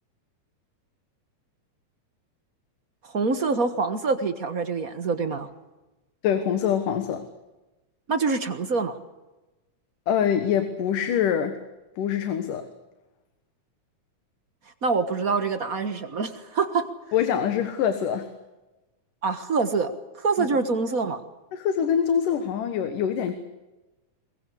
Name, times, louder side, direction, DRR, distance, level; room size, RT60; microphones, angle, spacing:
voice 1, 3.0-5.5 8.1-9.0 14.8-16.9 19.2-21.2, right 4 dB, 50° right, 10 dB, 1.0 m, -25 dB
voice 2, 6.2-7.2 10.1-11.6 12.0-12.7 17.1-18.3 20.4-20.5 21.5-23.4, left 8 dB, 80° left, 9 dB, 3.0 m, -24 dB
22.0 x 21.5 x 8.3 m, 1.1 s
omnidirectional pair, 3.7 m